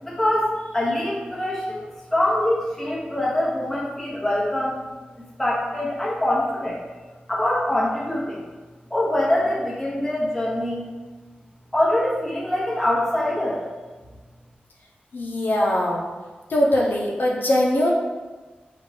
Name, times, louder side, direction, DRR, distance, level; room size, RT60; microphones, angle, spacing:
voice 1, 0.0-4.8 5.2-6.8 7.3-8.4 8.9-10.9 11.7-13.6, left 1 dB, 10° left, -6 dB, 1.1 m, -24 dB
voice 2, 15.1-16.0 16.5-17.9, left 1 dB, 70° left, -3 dB, 0.6 m, -21 dB
4.9 x 2.4 x 3.4 m, 1.3 s
wide cardioid pair, 75°, 3 cm